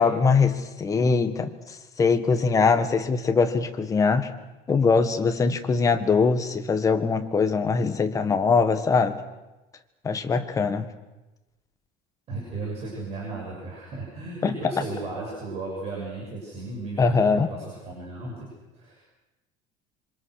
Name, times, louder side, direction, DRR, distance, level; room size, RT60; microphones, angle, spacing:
voice 1, 0.0-4.3 4.7-9.2 10.0-10.9 14.4-14.5 17.0-17.5, left 4 dB, 20° left, 7 dB, 1.6 m, -22 dB
voice 2, 12.3-19.0, right 2 dB, 40° right, -3 dB, 7.2 m, -35 dB
26.5 x 25.5 x 6.6 m, 1.0 s
cardioid pair, 160°, 17 cm